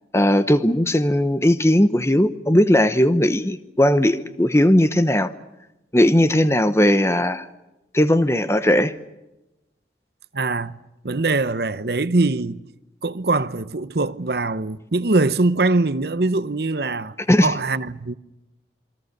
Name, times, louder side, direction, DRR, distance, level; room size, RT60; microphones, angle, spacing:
voice 1, 0.1-5.3 5.9-7.4 7.9-8.9 17.3-17.5, left 1 dB, 15° left, 0.9 m, -18 dB
voice 2, 10.3-10.8 11.0-12.7 13.0-17.1 17.4-18.1, right 3 dB, 60° right, 0.9 m, -22 dB
27.5 x 23.5 x 6.7 m
head